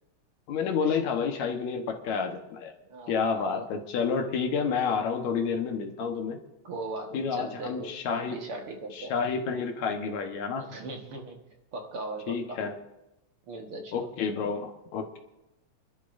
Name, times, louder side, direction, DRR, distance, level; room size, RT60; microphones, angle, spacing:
voice 1, 0.5-2.7 3.1-6.4 7.1-8.4 9.0-10.7 12.3-12.7 13.9-15.2, left 5 dB, 75° left, 4 dB, 2.6 m, -29 dB
voice 2, 2.8-3.6 6.6-9.1 10.6-11.5 11.7-12.6 13.5-14.1, right 2 dB, 55° right, 2 dB, 2.2 m, -39 dB
29.0 x 12.0 x 2.6 m, 0.93 s
omnidirectional pair, 3.3 m